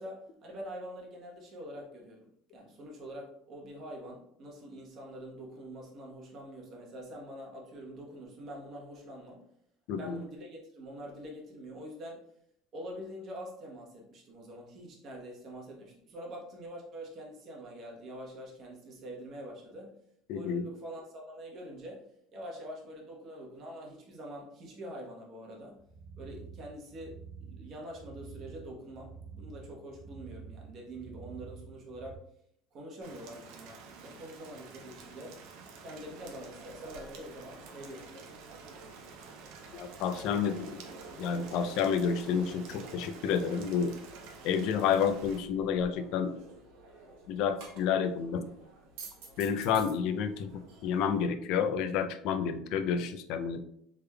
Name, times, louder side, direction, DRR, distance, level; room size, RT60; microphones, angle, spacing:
voice 1, 0.0-2.3 2.5-9.4 9.9-12.2 12.7-20.0 20.3-22.1 22.3-25.8 26.2-32.2 32.7-35.4 35.8-38.1, equal, 40° right, -1 dB, 1.0 m, -45 dB
voice 2, 9.9-10.2 20.3-20.6 39.7-40.8 41.2-43.9 44.4-46.3 47.3-48.5 49.4-53.6, left 7 dB, 60° left, 9 dB, 0.3 m, -30 dB
sound 1, 25.8-32.2, right 5 dB, 85° left, 1.2 m, -48 dB
Rain, 33.0-45.4, right 5 dB, 65° right, 0.6 m, -50 dB
sound 2, 35.9-51.2, right 3 dB, 80° right, 0.9 m, -51 dB
3.4 x 3.3 x 2.2 m, 0.70 s
cardioid pair, 145°, 0 cm